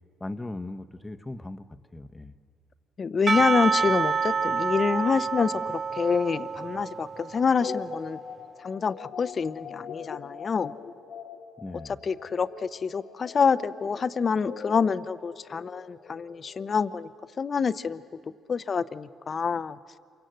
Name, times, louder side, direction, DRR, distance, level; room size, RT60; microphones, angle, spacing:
voice 1, 0.2-2.3 11.6-12.0, left 2 dB, 15° left, 10 dB, 0.9 m, -38 dB
voice 2, 3.0-8.2 8.6-10.7 12.0-17.1 17.4-18.0 18.5-19.8, left 5 dB, 45° left, 15 dB, 0.7 m, -27 dB
Percussion / Church bell, 3.3-7.7, right 5 dB, 40° right, 0.8 m, -28 dB
sound 1, 7.6-16.7, left 6 dB, 65° left, 1.4 m, -42 dB
27.5 x 24.0 x 7.9 m, 2.3 s
cardioid pair, 90°, 0 cm